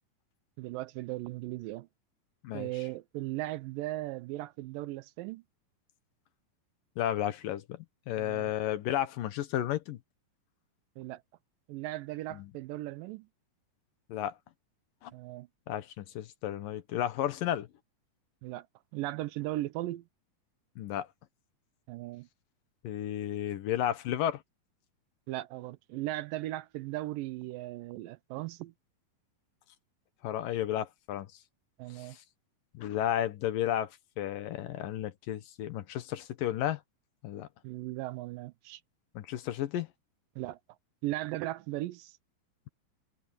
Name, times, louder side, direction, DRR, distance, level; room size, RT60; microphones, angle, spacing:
voice 1, 0.6-1.9 2.5-5.4 8.2-8.5 11.0-11.2 11.7-13.3 15.1-15.5 18.4-18.7 18.9-20.1 21.9-22.3 25.3-28.7 31.8-32.2 37.6-38.8 40.4-40.6 41.0-42.2, right 17 dB, 80° right, 2.2 m, -37 dB
voice 2, 7.0-10.0 12.3-12.5 14.1-14.3 15.0-15.1 15.7-17.7 20.8-21.1 22.8-24.4 30.2-31.3 31.9-32.1 32.7-33.9 34.2-36.8 37.2-37.5 39.2-39.9, left 11 dB, 75° left, 2.8 m, -33 dB
omnidirectional pair, 4.1 m